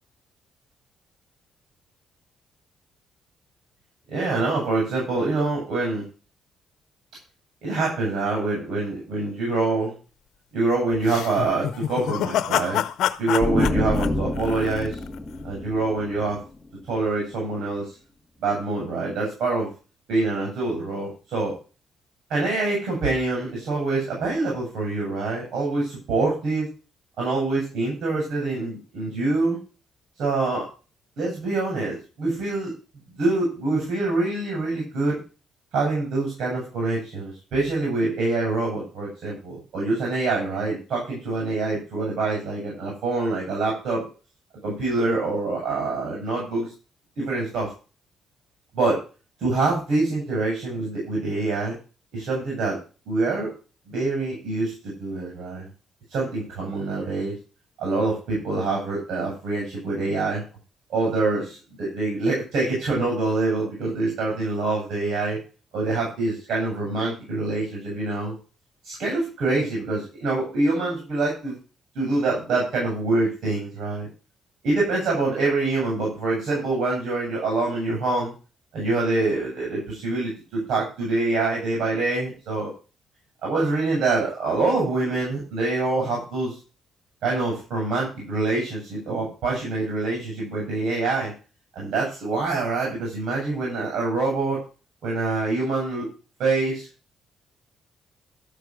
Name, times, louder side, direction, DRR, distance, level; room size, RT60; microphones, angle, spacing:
voice 1, 4.1-6.0 7.6-9.9 10.5-12.8 13.2-15.0 15.4-16.4 16.9-17.9 18.4-19.7 20.1-21.5 22.3-26.7 27.2-29.6 30.2-30.7 31.2-32.7 33.1-35.2 35.7-44.1 44.6-46.7 47.2-47.7 48.7-49.0 49.4-51.7 52.1-52.8 53.1-53.5 53.9-55.7 56.1-57.3 57.8-60.4 60.9-65.4 65.7-68.3 68.8-71.6 71.9-74.1 74.6-78.3 78.7-82.7 83.4-86.6 87.2-91.3 91.7-94.6 95.0-96.1 96.4-96.9, right 3 dB, 75° right, -2 dB, 7.3 m, -25 dB
sound 1, 11.0-15.2, left 11 dB, 80° left, 0.9 m, -27 dB
sound 2, 13.4-17.0, left 2 dB, 5° left, 1.7 m, -28 dB
13.0 x 6.8 x 6.2 m, 0.35 s
cardioid pair, 90°, 0 cm